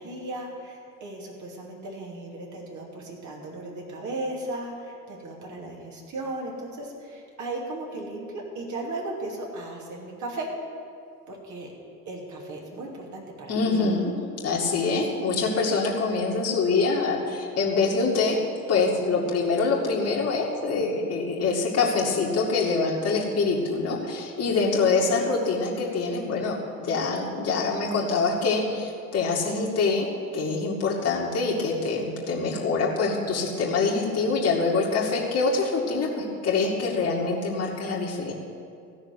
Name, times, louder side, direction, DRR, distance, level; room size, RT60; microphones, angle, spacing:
voice 1, 0.0-10.5 11.3-11.7 12.1-13.7 24.8-25.3, right 2 dB, 40° right, -1 dB, 2.9 m, -36 dB
voice 2, 13.5-18.4 18.7-38.3, left 4 dB, 35° left, -4 dB, 2.3 m, -25 dB
14.5 x 6.5 x 9.9 m, 2.4 s
figure-of-eight pair, 60°, 44 cm